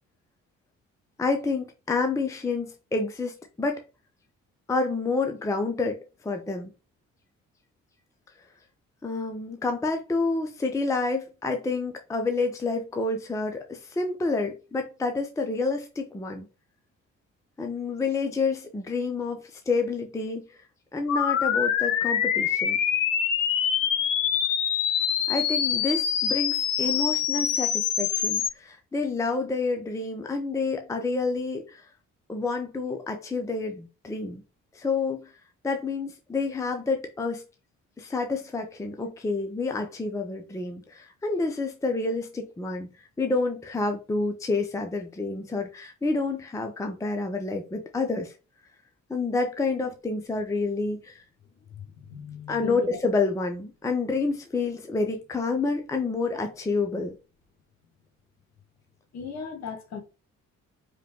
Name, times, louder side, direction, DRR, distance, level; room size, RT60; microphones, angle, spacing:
voice 1, 1.2-3.8 4.7-6.7 9.0-16.5 17.6-20.6 20.9-22.8 25.3-31.9 32.3-34.4 34.7-35.3 35.6-37.4 38.0-42.9 43.2-48.3 49.1-51.2 52.5-57.2, left 3 dB, 10° left, 0.6 m, -28 dB
sound 1, 21.1-28.5, left 8 dB, 75° left, 0.6 m, -25 dB
voice 2, 51.8-53.0 59.1-60.0, left 6 dB, 45° left, 1.1 m, -37 dB
5.0 x 2.3 x 2.9 m
figure-of-eight pair, 40°, 39 cm